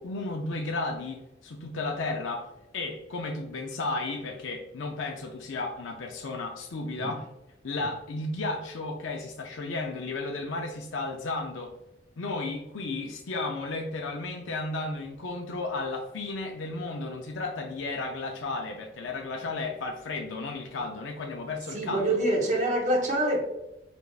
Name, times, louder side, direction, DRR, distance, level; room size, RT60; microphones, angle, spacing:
voice 1, 0.0-7.3 7.6-11.7 12.2-22.2, left 3 dB, 75° left, 0.5 m, -33 dB
voice 2, 21.7-23.4, right 1 dB, 35° right, 1.1 m, -26 dB
5.0 x 3.4 x 2.3 m
head